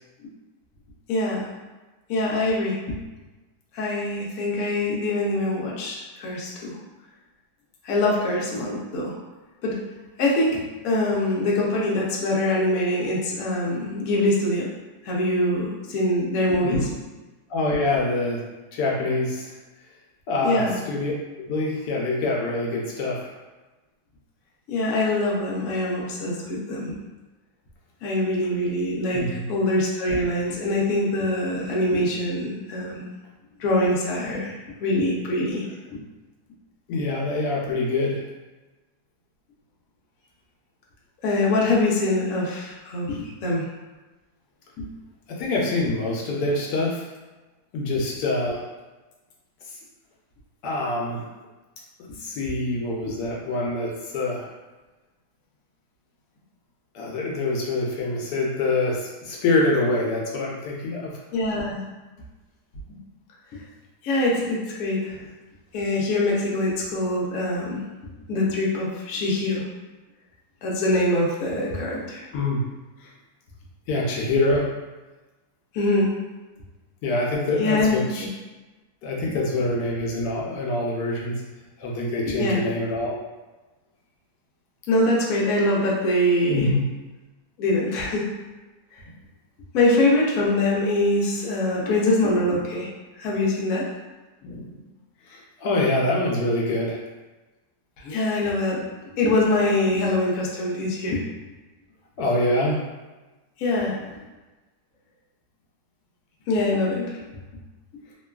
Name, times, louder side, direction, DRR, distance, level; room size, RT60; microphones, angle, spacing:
voice 1, 1.1-1.5 2.1-3.0 3.7-6.8 7.8-9.2 9.6-9.8 10.2-14.7 15.0-16.9 20.4-20.8 24.7-26.9 28.0-33.1 33.6-34.5 34.8-35.6 35.9-36.0 41.2-43.7 44.8-44.9 47.9-48.0 61.3-61.8 64.0-65.2 65.7-67.8 68.3-69.6 70.6-72.2 75.7-76.2 77.6-78.3 82.3-82.6 84.9-86.7 87.6-88.2 89.7-92.9 93.2-93.8 98.0-101.2 103.6-104.2 106.5-107.2, left 1 dB, 65° left, -4 dB, 1.0 m, -24 dB
voice 2, 17.5-18.4 18.7-19.6 20.3-21.1 21.5-23.4 29.1-29.4 36.9-38.2 45.3-47.1 47.7-48.6 50.6-51.3 52.2-54.5 56.9-61.1 72.3-72.6 73.0-73.1 73.9-74.7 77.0-78.2 79.0-81.4 81.8-83.1 86.5-86.8 94.4-94.7 95.3-97.0 102.2-102.8, left 2 dB, 85° left, -2 dB, 1.2 m, -25 dB
3.0 x 2.2 x 2.2 m, 1.2 s
omnidirectional pair, 1.7 m